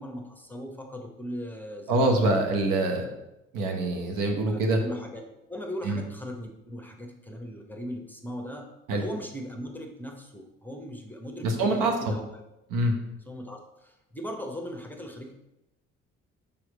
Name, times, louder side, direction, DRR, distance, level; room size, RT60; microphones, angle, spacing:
voice 1, 0.0-2.5 3.1-3.2 4.4-12.4 13.3-15.4, equal, 5° left, 2 dB, 1.0 m, -39 dB
voice 2, 1.9-3.1 3.5-4.8 5.8-6.0 8.9-9.0 11.4-12.1 12.7-12.9, right 2 dB, 60° right, 3 dB, 1.2 m, -25 dB
6.2 x 3.7 x 4.8 m, 0.90 s
figure-of-eight pair, 50°, 37 cm